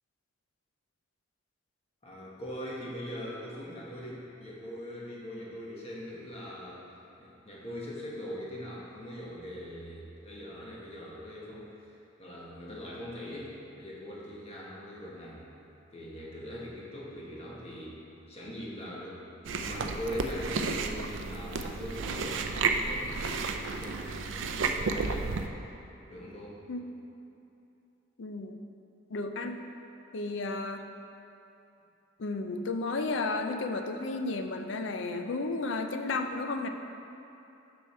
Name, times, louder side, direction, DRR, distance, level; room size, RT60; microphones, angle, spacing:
voice 1, 2.0-6.9 7.2-11.9 12.2-15.5 15.9-18.0 18.3-19.2 19.6-23.2 23.6-25.3 26.1-26.6, equal, 30° left, -5 dB, 1.3 m, -41 dB
Chewing mastication, 19.4-25.5, right 4 dB, 70° right, 0.4 m, -32 dB
voice 2, 28.2-28.6 29.1-29.6 30.1-30.9 32.2-36.7, left 3 dB, 65° left, 6 dB, 0.5 m, -33 dB
6.6 x 6.2 x 4.3 m, 2.9 s
head